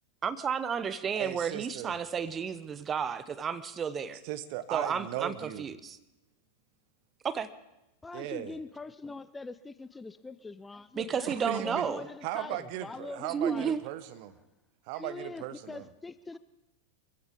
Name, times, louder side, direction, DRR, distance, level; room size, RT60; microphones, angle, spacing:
voice 1, 0.2-4.2 4.7-6.0 7.2-7.5 11.0-12.0 13.3-13.8, right 7 dB, 20° right, 0.7 m, -32 dB
voice 2, 1.2-1.9 4.2-5.7 8.1-8.6 11.3-11.9 12.2-14.4 14.9-15.9, right 13 dB, 45° right, 1.1 m, -37 dB
voice 3, 8.0-13.7 14.9-16.4, left 3 dB, 10° left, 0.4 m, -43 dB
23.5 x 15.5 x 3.7 m
figure-of-eight pair, 90°, 0 cm